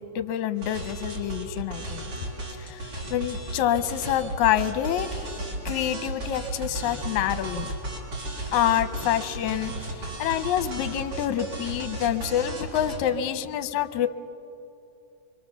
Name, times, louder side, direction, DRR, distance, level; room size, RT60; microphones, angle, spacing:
voice 1, 0.0-2.1 2.6-5.3 5.7-7.7 8.5-14.1, left 11 dB, 80° left, 9 dB, 2.1 m, -27 dB
sound 1, 0.6-13.0, right 1 dB, 50° right, 5.1 m, -35 dB
26.0 x 24.0 x 7.0 m, 2.8 s
omnidirectional pair, 3.5 m